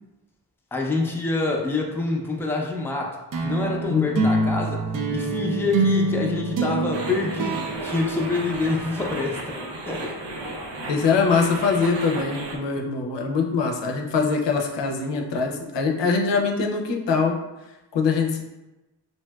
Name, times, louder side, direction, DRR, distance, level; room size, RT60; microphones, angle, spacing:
voice 1, 0.7-4.8 5.1-9.6 9.9-10.1, left 3 dB, 5° left, 0 dB, 0.4 m, -26 dB
sound 1, 3.3-8.9, right 2 dB, 50° right, 0.6 m, -26 dB
sound 2, 6.9-12.6, right 2 dB, 85° right, 0.6 m, -34 dB
voice 2, 10.9-17.4 17.9-18.4, left 5 dB, 80° left, 2 dB, 0.6 m, -23 dB
3.1 x 2.7 x 2.3 m, 1.0 s
cardioid pair, 60°, 42 cm